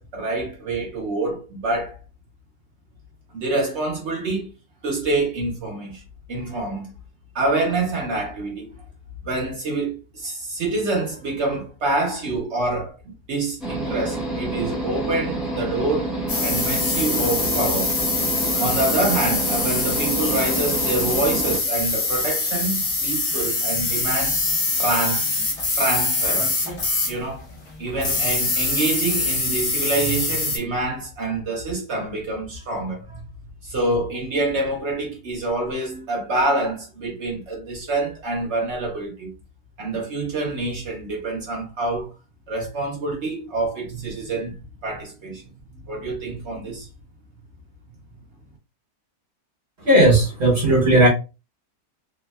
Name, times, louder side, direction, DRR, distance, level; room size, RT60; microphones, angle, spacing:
voice 1, 0.0-2.0 3.3-4.5 4.8-6.0 6.3-6.9 7.3-8.7 9.2-16.1 16.4-17.9 18.6-24.4 24.8-25.3 25.8-26.5 27.1-27.4 27.8-33.2 33.6-39.3 39.8-42.1 42.5-45.4 45.9-46.9, right 2 dB, 75° right, 0.6 m, -26 dB
sound 1, 13.6-21.6, right 1 dB, ahead, 0.3 m, -28 dB
sound 2, 16.3-27.2 27.9-30.6, left 3 dB, 75° left, 0.4 m, -24 dB
voice 2, 49.9-51.1, right 1 dB, 50° right, 0.9 m, -15 dB
3.4 x 2.1 x 2.2 m
omnidirectional pair, 1.9 m